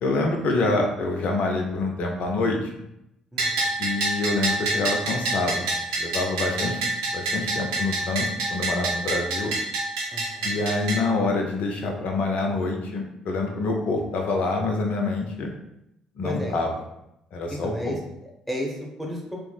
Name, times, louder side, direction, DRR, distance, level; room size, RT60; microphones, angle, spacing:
voice 1, 0.0-2.6 3.8-5.7 6.0-6.8 7.1-9.5 10.4-15.5 16.2-16.7 17.3-18.0, left 3 dB, 50° left, 2 dB, 0.5 m, -26 dB
voice 2, 3.3-3.6 10.1-10.6 16.2-16.6 17.5-18.0 18.5-19.4, equal, 5° left, -2 dB, 0.9 m, -32 dB
Bell, 3.4-11.0, right 2 dB, 75° right, 0.7 m, -27 dB
4.6 x 2.0 x 2.3 m, 0.84 s
figure-of-eight pair, 45°, 3 cm